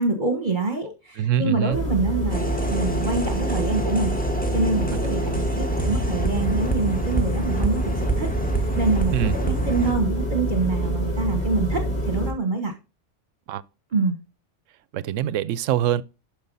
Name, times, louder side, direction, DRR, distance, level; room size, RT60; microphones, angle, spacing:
voice 1, 0.0-4.1 4.5-5.3 5.6-12.7 13.9-14.2, right 3 dB, 40° right, 1.4 m, -26 dB
voice 2, 1.2-1.8 4.9-5.1 5.3-5.5 9.1-9.4 13.5-13.6 14.9-16.0, right 11 dB, 90° right, 1.0 m, -24 dB
sound 1, 1.7-12.3, equal, 45° left, 4.8 m, -26 dB
sound 2, 2.3-9.9, right 2 dB, 5° left, 1.6 m, -29 dB
12.0 x 5.1 x 4.0 m
omnidirectional pair, 1.3 m